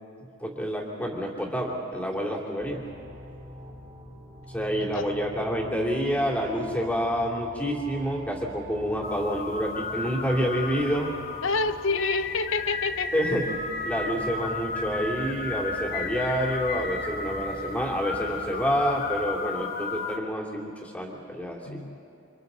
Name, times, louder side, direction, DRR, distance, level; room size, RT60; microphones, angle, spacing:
voice 1, 0.4-2.8 4.5-11.1 13.1-13.4 13.8-21.8, equal, 5° left, -2 dB, 2.9 m, -28 dB
sound 1, 2.6-19.2, equal, 40° right, 3.4 m, -45 dB
sound 2, 9.0-20.2, left 3 dB, 45° left, 1.3 m, -33 dB
voice 2, 11.4-13.1 21.6-22.0, left 4 dB, 70° left, 11 dB, 0.8 m, -28 dB
28.5 x 26.0 x 4.1 m, 2.7 s
head